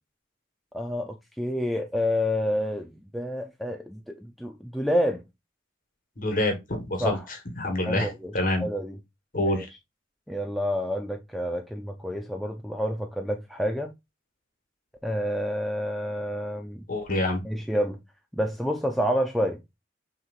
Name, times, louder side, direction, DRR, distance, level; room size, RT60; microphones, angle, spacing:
voice 1, 0.7-5.2 7.0-7.2 7.8-8.3 8.6-9.0 9.4-9.7 10.3-13.9 15.0-16.8 17.4-18.0 18.3-19.6, equal, ahead, 0.3 m, -28 dB
voice 2, 6.2-7.2 7.6-8.6 9.3-9.7 16.9-17.4, left 1 dB, 45° left, 1.3 m, -26 dB
6.2 x 3.1 x 2.4 m
head